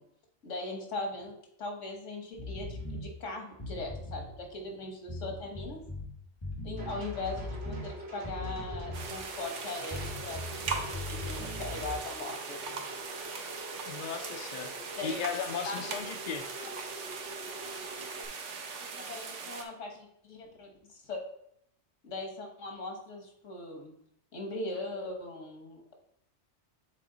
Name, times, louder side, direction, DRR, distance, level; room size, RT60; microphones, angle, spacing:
voice 1, 0.4-1.3 1.6-5.8 6.6-12.8 15.0-15.2 15.6-15.9 18.8-21.2 22.0-23.9 24.3-25.9, left 2 dB, 85° left, 2 dB, 1.6 m, -40 dB
sound 1, 2.4-3.0 3.5-4.3 5.1-6.1 6.4-7.9 8.2-9.2 9.9-12.0, left 2 dB, 25° left, 1.3 m, -39 dB
sound 2, 6.8-18.2, right 1 dB, 60° right, 1.5 m, -46 dB
sound 3, 8.9-19.6, right 5 dB, 75° right, 1.1 m, -40 dB
voice 2, 13.8-14.7 15.0-16.5, left 7 dB, 55° left, 8 dB, 0.5 m, -36 dB
7.6 x 3.9 x 3.9 m, 0.73 s
omnidirectional pair, 1.2 m